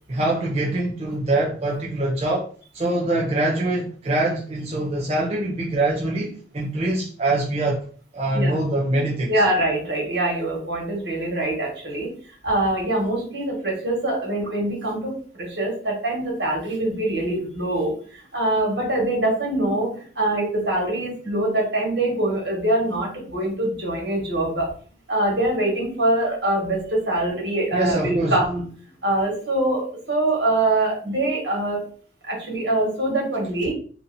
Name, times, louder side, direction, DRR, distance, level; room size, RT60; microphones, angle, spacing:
voice 1, 0.1-2.5 2.7-7.8 8.1-9.4 27.7-28.4, right 2 dB, 35° right, 0.5 m, -24 dB
voice 2, 9.3-12.1 12.4-24.7 25.1-28.6 29.0-31.9 32.2-33.7, right 1 dB, 75° right, 1.5 m, -24 dB
2.8 x 2.6 x 4.0 m
head